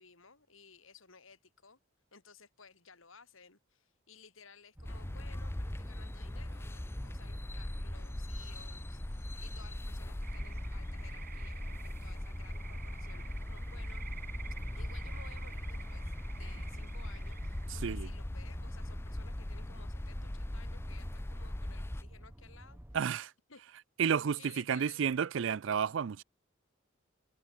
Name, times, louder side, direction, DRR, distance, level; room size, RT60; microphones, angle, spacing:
voice 1, 0.0-1.8 2.1-14.1 14.8-22.8 23.5-23.6 24.4-25.0, left 5 dB, 80° left, 3.6 m, -58 dB
sound 1, 4.8-22.0, left 1 dB, 10° left, 0.5 m, -40 dB
sound 2, 4.8-23.0, equal, 10° right, 1.4 m, -49 dB
sound 3, 10.2-17.7, right 9 dB, 45° right, 7.0 m, -52 dB
voice 2, 17.7-18.1 22.9-23.3 24.0-26.2, right 7 dB, 65° right, 0.4 m, -31 dB
head